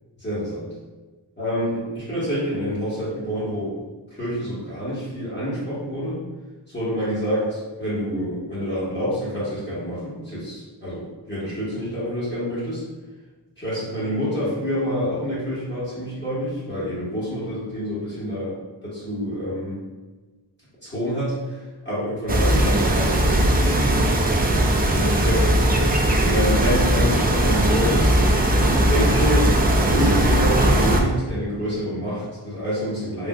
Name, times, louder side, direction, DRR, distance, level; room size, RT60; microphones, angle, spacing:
voice 1, 0.2-0.6 1.4-3.7 4.1-6.2 6.7-12.8 13.6-18.5 18.8-19.8 20.8-24.0 24.9-25.5 26.2-28.2 28.8-29.5 29.9-33.3, equal, 25° left, -11 dB, 1.3 m, -27 dB
sound 1, 22.3-31.0, right 1 dB, 25° right, 0.3 m, -19 dB
3.5 x 2.4 x 2.3 m, 1.3 s
wide cardioid pair, 50°, 45 cm